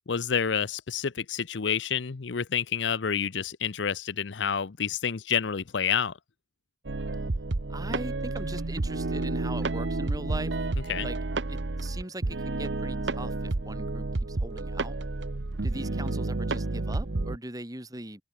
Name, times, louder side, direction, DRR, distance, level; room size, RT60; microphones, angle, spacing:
voice 1, 0.1-6.2 10.9-11.1, left 7 dB, 85° left, 0.7 m, -29 dB
sound 1, 6.9-17.4, right 2 dB, 85° right, 1.0 m, -30 dB
voice 2, 7.7-10.6 11.0-11.2 11.5-15.0 15.6-18.2, right 1 dB, 20° right, 3.2 m, -40 dB
open air
head